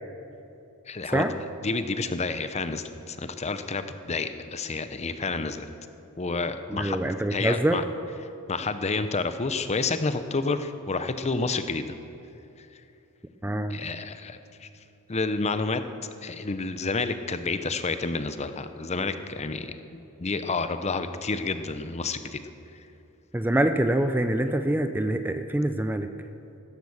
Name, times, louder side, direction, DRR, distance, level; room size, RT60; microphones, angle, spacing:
voice 1, 0.9-1.2 1.6-5.7 6.2-7.0 7.3-7.8 8.5-12.0 13.7-14.7 15.1-22.4, left 3 dB, 30° left, 10 dB, 0.7 m, -29 dB
voice 2, 6.7-7.8 13.4-13.8 23.3-26.1, right 1 dB, 10° right, 8 dB, 0.5 m, -25 dB
15.0 x 13.0 x 7.1 m, 2.8 s
head